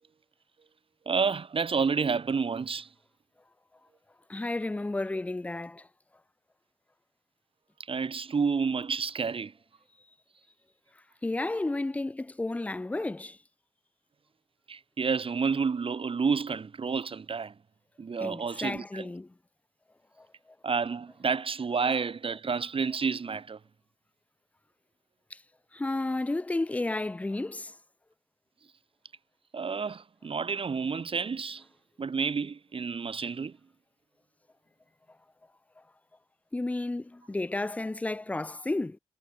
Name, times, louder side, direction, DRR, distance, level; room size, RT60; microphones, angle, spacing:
voice 1, 1.0-2.9 7.8-9.5 14.7-17.5 18.0-19.1 20.6-23.6 29.5-31.6 32.0-33.6, right 5 dB, 55° right, 1.3 m, -30 dB
voice 2, 4.3-5.9 11.2-13.4 18.2-19.3 20.2-20.3 25.3-25.4 25.7-27.8 36.5-39.0, left 2 dB, 10° left, 0.3 m, -32 dB
cardioid pair, 70°, 11 cm